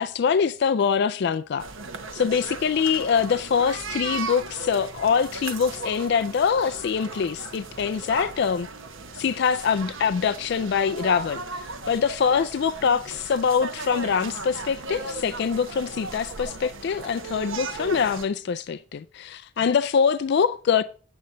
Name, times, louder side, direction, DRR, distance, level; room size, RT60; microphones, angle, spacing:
voice 1, 0.0-1.7 2.1-8.7 9.1-20.8, left 6 dB, 50° left, 0.3 m, -24 dB
sound 1, 1.6-18.3, right 4 dB, 65° right, 1.0 m, -37 dB
8.5 x 7.6 x 3.9 m
head